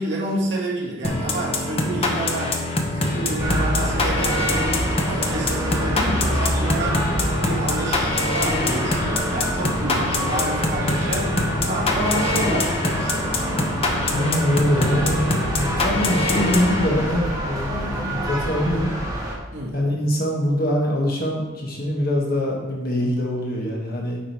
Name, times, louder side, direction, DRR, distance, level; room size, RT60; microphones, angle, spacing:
voice 1, 0.0-2.6 2.9-4.6 5.0-7.0 7.4-13.7 19.5-19.8, right 1 dB, 55° right, -5 dB, 1.9 m, -29 dB
sound 1, 1.0-17.3, left 2 dB, 30° left, 0.8 m, -24 dB
sound 2, 3.4-19.3, right 1 dB, 15° right, 1.2 m, -27 dB
voice 2, 14.0-19.0 19.7-24.2, equal, 45° left, -2 dB, 1.4 m, -23 dB
8.5 x 5.0 x 4.7 m, 1.1 s
head